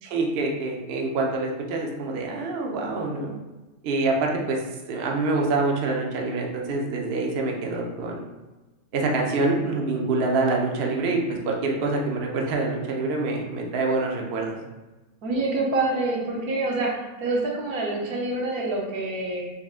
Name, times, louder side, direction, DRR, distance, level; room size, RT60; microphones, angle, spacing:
voice 1, 0.0-3.3 3.8-4.6 4.9-8.3 8.9-14.6, right 3 dB, 55° right, 0 dB, 0.7 m, -26 dB
voice 2, 15.2-16.9 17.2-19.5, right 2 dB, 85° right, -2 dB, 1.3 m, -26 dB
4.2 x 3.5 x 2.4 m, 1.1 s
omnidirectional pair, 1.5 m